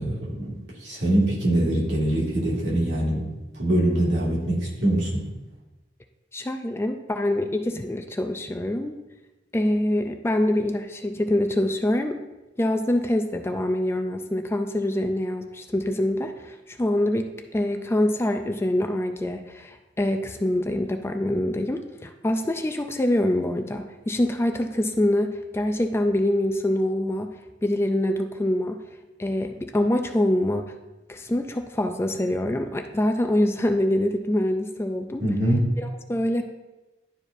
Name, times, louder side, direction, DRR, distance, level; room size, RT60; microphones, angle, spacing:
voice 1, 0.0-5.3 35.2-35.7, right 1 dB, 70° right, -6 dB, 2.3 m, -24 dB
voice 2, 6.3-9.0 9.5-12.2 12.6-27.3 27.6-28.8 29.2-30.7 31.1-35.2 35.8-36.4, left 1 dB, 15° left, 6 dB, 0.3 m, -25 dB
11.0 x 4.7 x 2.6 m, 1.1 s
head